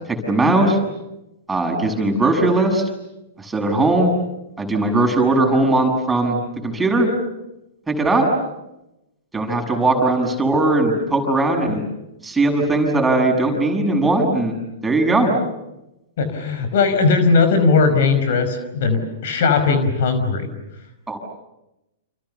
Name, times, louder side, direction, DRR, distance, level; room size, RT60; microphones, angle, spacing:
voice 1, 0.1-0.8 1.5-2.8 3.4-4.1 4.6-6.4 6.6-7.1 7.9-8.3 9.3-11.8 12.2-14.6 14.8-15.3 21.1-21.2, right 2 dB, 10° right, 3 dB, 7.1 m, -19 dB
voice 2, 16.2-20.5, left 4 dB, 60° left, 10 dB, 5.1 m, -18 dB
29.5 x 28.5 x 7.0 m, 0.91 s
hypercardioid pair, 110°, 0 cm